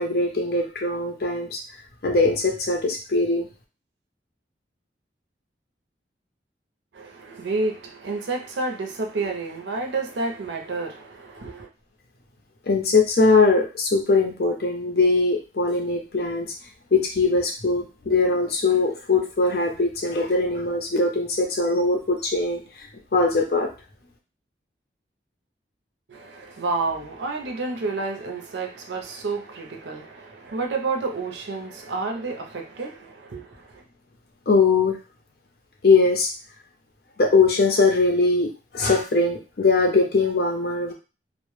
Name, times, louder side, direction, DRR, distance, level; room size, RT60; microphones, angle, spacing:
voice 1, 0.0-1.6 2.0-3.5 12.7-16.5 16.9-23.7 34.5-35.0 35.8-36.3 37.2-40.9, left 3 dB, 60° left, 0.6 m, -21 dB
voice 2, 6.9-11.7 26.1-33.8, right 3 dB, 80° right, 0.5 m, -30 dB
2.1 x 2.0 x 3.1 m
head